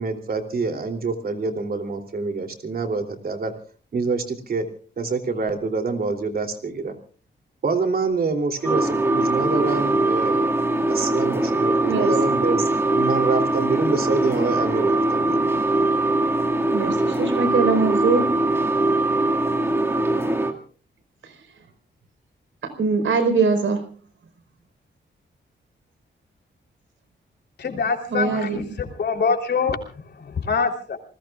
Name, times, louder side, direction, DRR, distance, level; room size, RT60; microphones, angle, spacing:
voice 1, 0.0-3.5 3.9-4.7 5.0-6.9 7.6-10.5 10.9-15.4, right 4 dB, 50° right, 5 dB, 3.1 m, -26 dB
sound 1, 8.6-20.5, right 2 dB, 10° right, 2.0 m, -21 dB
voice 2, 16.7-18.3 21.2-21.3 22.6-23.9 28.1-28.6, right 4 dB, 85° right, 9 dB, 4.7 m, -22 dB
voice 3, 27.6-31.0, left 5 dB, 60° left, 4 dB, 3.4 m, -25 dB
28.5 x 20.5 x 2.4 m, 0.40 s
wide cardioid pair, 175°, 20 cm